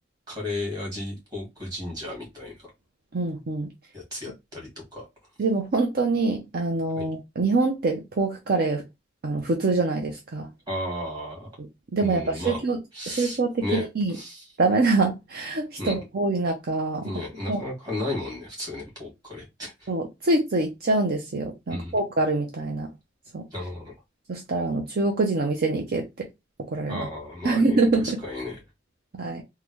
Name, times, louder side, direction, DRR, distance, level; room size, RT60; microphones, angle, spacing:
voice 1, 0.3-2.7 3.9-5.1 6.9-7.1 10.7-11.6 12.0-12.6 12.9-14.5 15.8-16.1 17.0-19.9 21.7-21.9 23.5-23.9 26.9-28.6, left 1 dB, 20° right, 1.9 m, -34 dB
voice 2, 3.1-3.7 5.4-8.8 9.2-10.5 11.9-12.8 13.1-14.1 14.6-17.1 17.5-17.6 19.9-22.9 23.3-23.4 24.3-26.3 26.7-27.1 27.4-28.2 29.1-29.4, right 3 dB, 55° right, 0.6 m, -25 dB
3.7 x 2.2 x 3.0 m
head